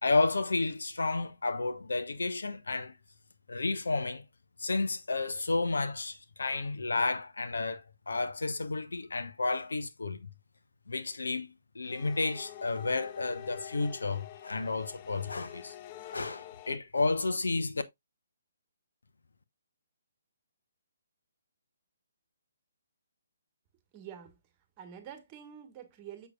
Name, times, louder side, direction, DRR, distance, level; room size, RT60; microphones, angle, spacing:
voice 1, 0.0-2.9 3.5-4.2 4.6-10.3 10.9-15.7 16.1-17.8, left 3 dB, 75° left, 1.0 m, -31 dB
sound 1, 11.8-16.8, left 12 dB, 30° left, 0.5 m, -47 dB
voice 2, 23.9-24.4 24.8-26.3, right 9 dB, 25° right, 1.7 m, -47 dB
6.8 x 6.6 x 2.4 m
figure-of-eight pair, 140°, 0 cm